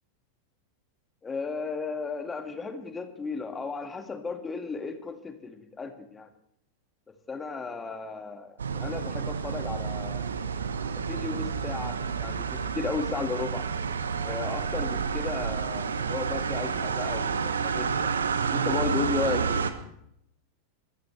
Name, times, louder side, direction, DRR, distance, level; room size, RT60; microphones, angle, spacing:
voice 1, 1.2-6.3 7.3-10.3 11.0-13.6 14.2-18.2 18.5-19.6, left 4 dB, 15° left, 6 dB, 2.1 m, -35 dB
sound 1, 8.6-19.7, right 6 dB, 70° right, 1.2 m, -30 dB
25.0 x 14.0 x 3.4 m, 0.75 s
figure-of-eight pair, 90°, 0 cm